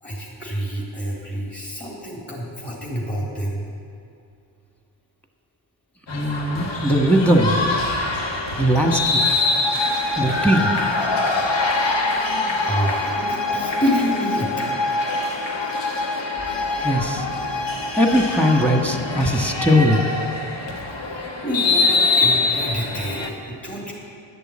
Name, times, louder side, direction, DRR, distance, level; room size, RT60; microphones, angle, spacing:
voice 1, 0.0-3.6 12.6-14.6 20.9-21.0 21.4-23.9, equal, 25° left, -5 dB, 3.3 m, -27 dB
sound 1, 6.1-23.3, left 3 dB, 65° left, 1.5 m, -24 dB
voice 2, 6.1-7.7 8.6-9.2 10.2-10.7 16.8-17.3 17.9-20.0, equal, 5° left, 3 dB, 1.5 m, -19 dB
11.5 x 6.9 x 8.7 m, 2.6 s
cardioid pair, 65°, 45 cm